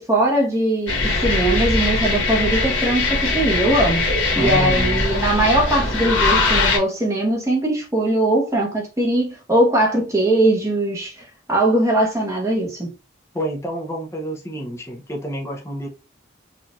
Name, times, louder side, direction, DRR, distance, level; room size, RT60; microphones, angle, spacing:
voice 1, 0.0-11.2 11.5-12.9, right 1 dB, 15° right, 1.0 m, -20 dB
sound 1, 0.9-6.8, left 3 dB, 70° left, 1.3 m, -21 dB
voice 2, 4.4-5.1 13.3-15.9, equal, 15° left, 0.6 m, -28 dB
4.5 x 2.5 x 2.3 m
head